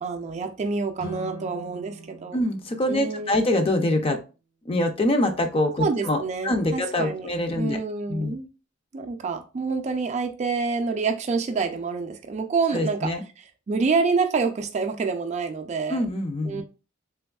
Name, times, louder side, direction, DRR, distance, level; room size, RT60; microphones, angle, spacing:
voice 1, 0.0-2.4 2.9-3.4 5.8-7.3 7.6-8.5 8.9-13.1 13.7-16.0 16.5-16.6, right 4 dB, 35° right, 5 dB, 0.4 m, -27 dB
sound 1, 1.0-4.2, right 2 dB, 80° left, 1.0 m, -42 dB
voice 2, 2.3-4.2 4.6-7.8 8.1-8.3 12.7-13.2 15.9-16.6, left 1 dB, 30° left, 6 dB, 0.5 m, -24 dB
3.4 x 2.9 x 2.3 m, 0.32 s
head